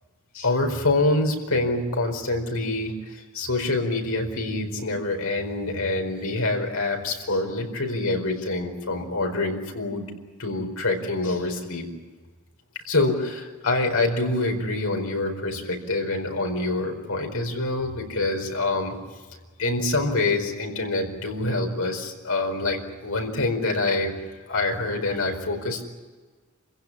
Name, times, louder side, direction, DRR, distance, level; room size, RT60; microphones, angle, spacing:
voice 1, 0.3-2.9 3.3-10.0 10.4-11.9 12.9-18.9 19.6-24.1 24.5-25.8, left 2 dB, 75° left, 3 dB, 4.7 m, -26 dB
27.5 x 16.0 x 9.9 m, 1.4 s
head